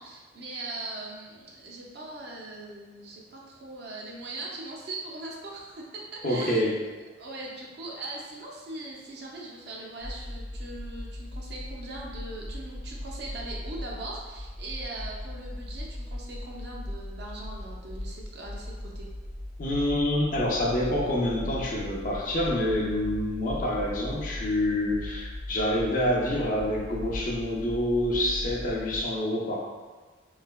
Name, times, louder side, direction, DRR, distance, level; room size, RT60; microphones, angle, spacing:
voice 1, 0.0-6.7 7.2-19.1, right 2 dB, 55° right, -3 dB, 0.5 m, -40 dB
voice 2, 6.2-6.8 19.6-29.6, left 1 dB, 45° left, -2 dB, 0.5 m, -27 dB
sound 1, 10.0-29.0, left 1 dB, 85° right, 1.5 m, -38 dB
3.2 x 2.8 x 2.2 m, 1.3 s
head